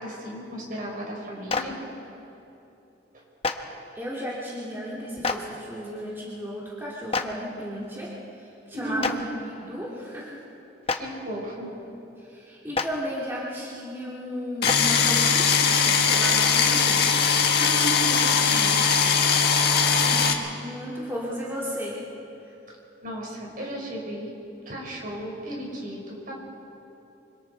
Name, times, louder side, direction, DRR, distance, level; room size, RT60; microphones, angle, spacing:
voice 1, 0.0-1.8 3.1-3.2 8.7-9.1 10.9-11.7 17.6-18.8 19.2-19.4 23.0-24.3 24.6-26.4, right 1 dB, 50° right, -2 dB, 5.1 m, -35 dB
Clapping, 1.5-1.6 3.4-3.5 5.2-5.4 7.1-7.2 9.0-9.1 10.8-11.0 12.7-12.8 14.6-14.8, left 4 dB, 35° left, 0.9 m, -25 dB
voice 2, 3.9-10.4 12.2-17.3 19.7-22.0, equal, 15° right, -6 dB, 2.5 m, -34 dB
sound 1, 14.6-20.3, left 6 dB, 60° left, 1.6 m, -20 dB
25.5 x 25.0 x 4.5 m, 3.0 s
head